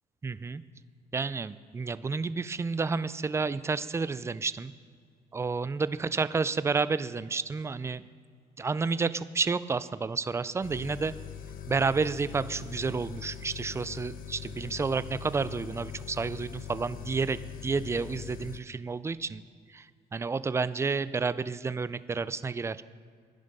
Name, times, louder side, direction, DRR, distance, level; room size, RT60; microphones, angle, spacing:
voice 1, 0.2-0.6 1.1-4.7 5.3-8.0 8.6-11.1 11.7-19.4 19.7-19.8 20.1-22.8, right 4 dB, 15° right, 15 dB, 0.4 m, -30 dB
sound 1, 10.6-18.6, left 9 dB, 55° left, 0.9 m, -42 dB
13.0 x 10.5 x 5.4 m, 2.1 s
cardioid pair, 110°, 17 cm